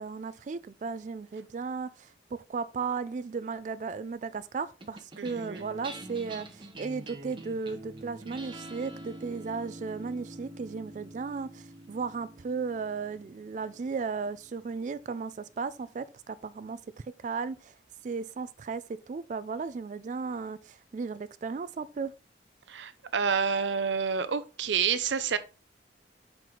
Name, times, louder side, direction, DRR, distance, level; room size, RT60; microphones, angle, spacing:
voice 1, 0.0-16.8 17.2-17.7 18.0-18.8 19.1-22.1, right 5 dB, 45° right, 0.3 m, -35 dB
sound 1, 4.8-15.4, right 1 dB, 25° right, 0.9 m, -46 dB
voice 2, 5.2-5.6 22.7-25.4, right 6 dB, 85° right, 0.6 m, -29 dB
5.8 x 4.6 x 3.8 m
head